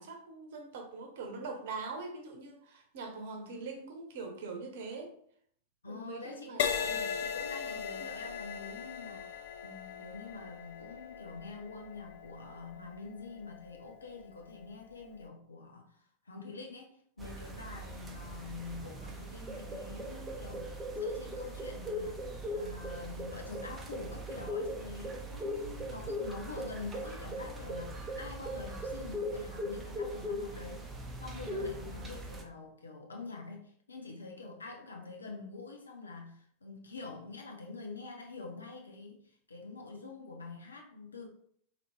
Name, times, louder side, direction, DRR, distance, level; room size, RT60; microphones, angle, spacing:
voice 1, 0.0-5.1 5.8-6.7 31.6-31.9, right 4 dB, 55° right, 3 dB, 0.9 m, -43 dB
voice 2, 5.8-16.0 16.3-30.9 31.2-41.3, left 3 dB, 75° left, 2 dB, 0.7 m, -46 dB
Crash cymbal, 6.6-14.2 14.9-15.2, left 7 dB, 55° left, 0.4 m, -38 dB
sound 1, 17.2-32.4, equal, 15° right, 0.7 m, -39 dB
4.1 x 2.9 x 3.1 m, 0.65 s
figure-of-eight pair, 90°, 0 cm